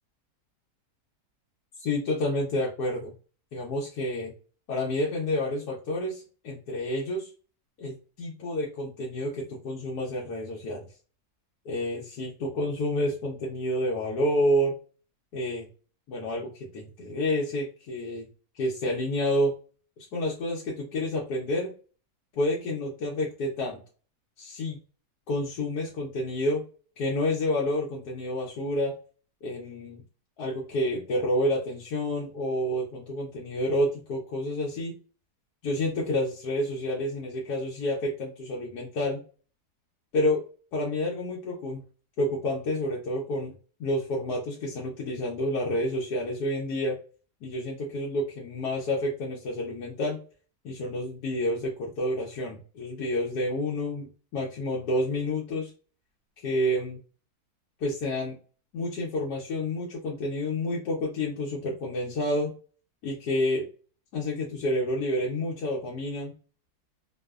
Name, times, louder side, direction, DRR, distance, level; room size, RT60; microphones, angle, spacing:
voice 1, 1.8-3.1 3.5-4.3 4.7-7.3 7.8-10.8 11.6-14.7 15.3-15.7 16.1-18.3 18.5-19.5 20.1-21.7 22.4-23.8 24.4-24.8 25.3-26.6 27.0-28.9 29.4-30.0 30.4-34.9 35.6-39.2 40.1-40.4 40.7-41.8 42.2-43.5 43.8-47.0 47.4-50.2 50.6-54.1 54.3-55.7 56.4-57.0 57.8-58.3 58.7-62.5 63.0-63.7 64.1-66.3, left 1 dB, 80° left, -3 dB, 1.2 m, -29 dB
2.9 x 2.0 x 2.3 m, 0.38 s
omnidirectional pair, 1.7 m